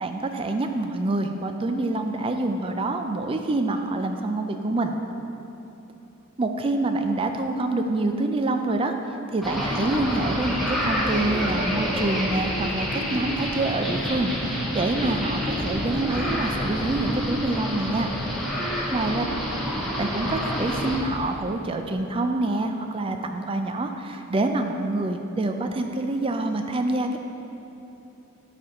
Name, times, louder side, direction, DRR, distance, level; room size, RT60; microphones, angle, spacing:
voice 1, 0.0-5.0 6.4-8.9 9.3-18.1 18.9-19.2 20.0-27.2, right 2 dB, 25° right, 6 dB, 0.3 m, -26 dB
sound 1, 9.4-21.0, equal, ahead, 0.8 m, -28 dB
7.6 x 4.3 x 4.9 m, 2.9 s
head